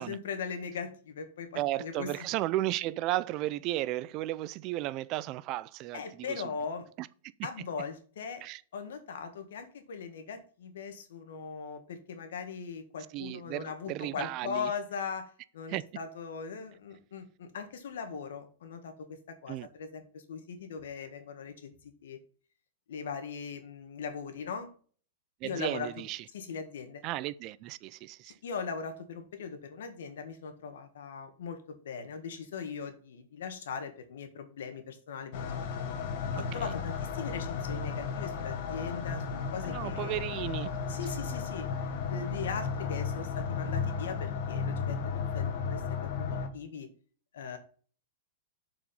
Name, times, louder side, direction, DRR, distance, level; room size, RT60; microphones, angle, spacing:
voice 1, 0.0-2.2 5.9-6.9 7.4-8.4 8.7-22.2 22.9-24.7 25.4-25.9 26.3-27.0 28.4-35.5 36.3-40.2 40.9-41.7 42.0-46.9 47.3-47.6, left 6 dB, 75° left, 1.7 m, -40 dB
voice 2, 1.5-6.4 7.0-7.1 8.4-8.6 13.1-14.7 15.7-15.8 19.5-19.7 25.4-26.2 27.0-28.3 36.3-36.6 39.7-40.7, right 16 dB, 35° right, 0.4 m, -34 dB
sound 1, 35.3-46.5, left 6 dB, 50° left, 1.5 m, -34 dB
7.3 x 4.9 x 5.4 m
supercardioid pair, 155°, 0 cm